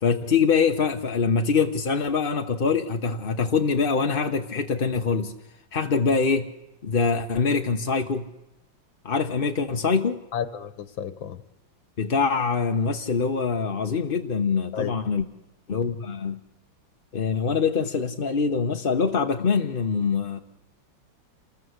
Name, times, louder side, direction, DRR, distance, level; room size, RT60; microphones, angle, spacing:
voice 1, 0.0-5.3 5.7-6.5 6.8-8.2 9.0-10.2 12.0-15.2 15.7-16.4 17.1-20.4, left 5 dB, 35° left, 1.0 m, -24 dB
voice 2, 10.3-11.4 14.7-15.0, left 8 dB, 80° left, 1.8 m, -32 dB
28.5 x 20.0 x 8.1 m
omnidirectional pair, 2.1 m